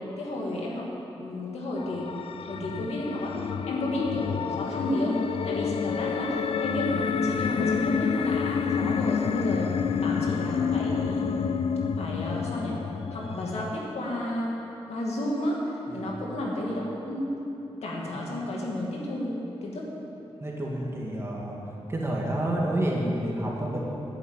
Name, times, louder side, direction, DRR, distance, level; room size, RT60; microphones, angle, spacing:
voice 1, 0.2-0.9 1.2-2.1 2.4-5.1 5.4-9.7 10.0-11.3 12.0-12.8 13.1-14.5 14.9-17.3 17.8-19.3 19.6-19.9, left 1 dB, 80° left, -3 dB, 2.5 m, -32 dB
sound 1, 1.8-13.7, left 6 dB, 65° left, 0.4 m, -29 dB
voice 2, 20.4-21.6 21.9-23.8, right 1 dB, 25° right, -3 dB, 1.9 m, -29 dB
10.5 x 8.3 x 9.0 m, 3.0 s
wide cardioid pair, 155°, 11 cm